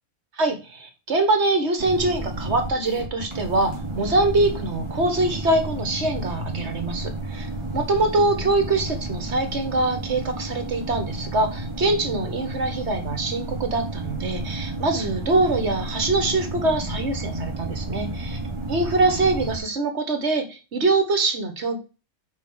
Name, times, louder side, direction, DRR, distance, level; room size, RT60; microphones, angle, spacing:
voice 1, 0.4-7.5 7.7-18.4 18.7-21.8, right 2 dB, 60° right, 6 dB, 1.6 m, -24 dB
sound 1, 1.8-19.6, right 2 dB, 20° right, 1.9 m, -32 dB
5.5 x 4.8 x 6.3 m, 0.31 s
omnidirectional pair, 1.3 m